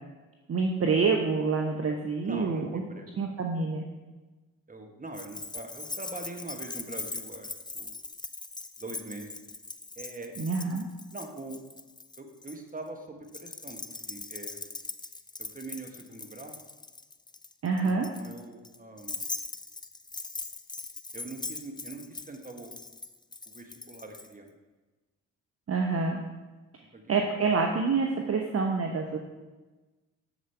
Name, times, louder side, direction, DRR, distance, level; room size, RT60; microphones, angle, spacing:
voice 1, 0.5-2.8 3.2-3.9 10.4-10.8 17.6-18.1 25.7-26.2 27.1-29.2, right 4 dB, 40° right, 2 dB, 0.9 m, -27 dB
voice 2, 2.2-3.2 4.7-7.5 7.7-7.9 8.8-9.3 9.9-10.4 11.1-11.6 12.2-14.7 15.4-16.6 17.8-19.2 21.1-22.7 23.5-24.5 26.9-27.0, right 2 dB, 20° right, 4 dB, 1.5 m, -43 dB
Keys jangling, 5.1-12.6 13.3-24.3, left 3 dB, 10° left, 0.5 m, -41 dB
7.3 x 6.8 x 4.5 m, 1.2 s
hypercardioid pair, 45°, 37 cm